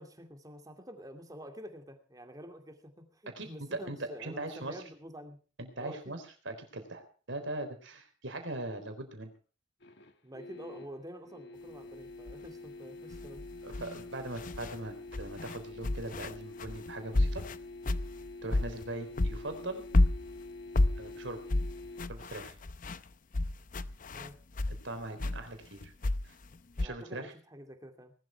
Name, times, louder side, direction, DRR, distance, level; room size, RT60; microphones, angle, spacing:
voice 1, 0.0-5.4 5.8-6.2 10.2-13.4 24.1-24.3 26.8-28.1, equal, 20° right, 5 dB, 2.4 m, -48 dB
voice 2, 3.3-4.8 5.6-7.0 7.3-9.3 13.6-17.5 18.4-19.8 21.0-21.4 22.1-22.6 24.8-25.9 26.2-26.4 26.8-27.3, right 2 dB, 75° right, 7 dB, 3.9 m, -40 dB
sound 1, 9.8-22.1, left 2 dB, 60° left, 1.6 m, -47 dB
sound 2, 12.3-12.5 13.1-14.8 15.1-18.9 19.2-24.8 25.2-26.9, left 2 dB, 45° left, 0.7 m, -31 dB
20.0 x 12.5 x 4.7 m, 0.39 s
head